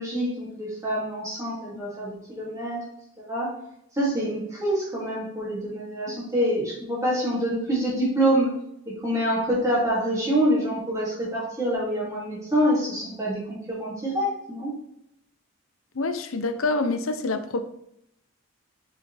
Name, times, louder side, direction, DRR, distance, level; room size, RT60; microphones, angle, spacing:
voice 1, 0.0-2.8 3.2-3.6 3.9-8.5 8.9-14.8, equal, 15° right, -7 dB, 2.6 m, -26 dB
voice 2, 15.9-17.6, left 3 dB, 85° left, 9 dB, 0.7 m, -26 dB
5.9 x 5.8 x 3.4 m, 0.76 s
head